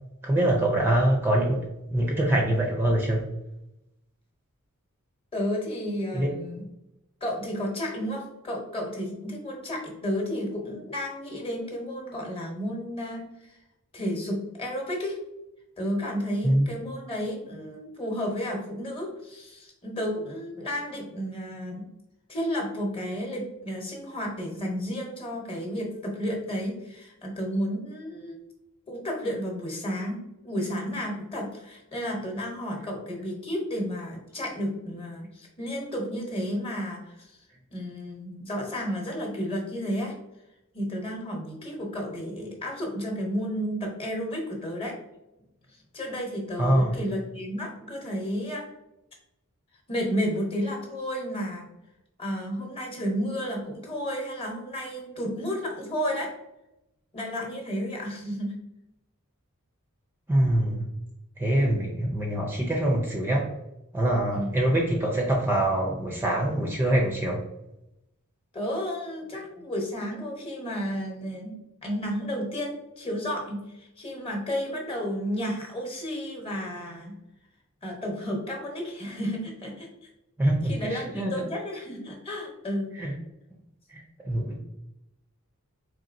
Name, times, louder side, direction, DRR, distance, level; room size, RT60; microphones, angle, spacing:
voice 1, 0.2-1.6 1.9-3.3 6.1-6.3 16.4-16.7 46.6-47.0 60.3-60.9 61.4-63.5 63.9-67.4 80.4-81.5 82.9-83.1 83.9-84.6, right 1 dB, 10° right, -1 dB, 0.4 m, -24 dB
voice 2, 5.3-6.7 7.2-13.6 13.9-15.2 15.8-21.8 22.3-28.5 28.9-37.4 37.7-40.1 40.7-45.0 45.9-48.7 49.9-51.7 52.2-56.3 57.1-58.5 64.3-64.5 68.5-77.1 77.8-80.1 80.6-83.0, equal, 25° left, 0 dB, 1.0 m, -32 dB
4.1 x 3.1 x 2.5 m, 0.90 s
head